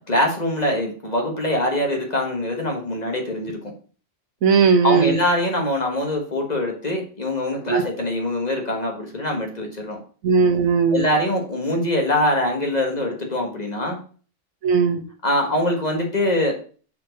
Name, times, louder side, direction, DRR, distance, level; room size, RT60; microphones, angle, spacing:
voice 1, 0.1-3.7 4.8-10.0 10.9-14.0 15.2-16.5, left 1 dB, 30° left, 1 dB, 1.8 m, -23 dB
voice 2, 4.4-5.2 7.7-7.8 10.2-11.0 14.6-15.0, right 5 dB, 90° right, 7 dB, 1.4 m, -17 dB
5.9 x 4.6 x 6.4 m, 0.40 s
omnidirectional pair, 1.4 m